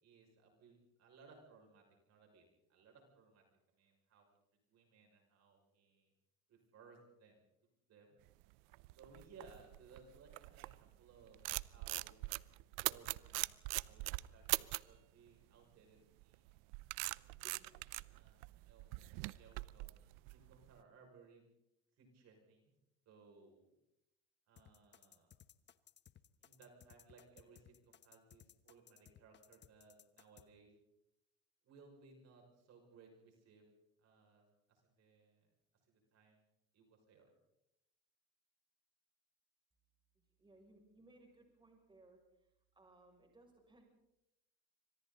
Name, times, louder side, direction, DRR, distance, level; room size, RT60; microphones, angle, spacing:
voice 1, 0.0-2.4 2.7-3.4 3.7-4.3 4.7-6.1 6.5-7.4 7.9-8.2 9.0-11.4 11.7-12.3 12.8-16.7 17.2-17.7 18.1-18.9 19.3-19.9 20.3-21.4 22.0-22.7 23.1-23.7 24.5-25.3 26.4-30.7 31.6-33.6 34.0-35.5 35.9-36.4 36.7-37.3, right 4 dB, 50° right, 2 dB, 6.3 m, -63 dB
sound 1, 8.5-10.9 11.2-15.0 16.2-20.7, right 25 dB, 70° right, 0.7 m, -41 dB
sound 2, 24.6-30.5, left 9 dB, 30° left, 1.0 m, -62 dB
voice 2, 40.4-42.2 42.7-43.8, right 2 dB, 15° right, 1 dB, 6.8 m, -64 dB
27.5 x 25.5 x 4.1 m, 0.85 s
supercardioid pair, 115°, 34 cm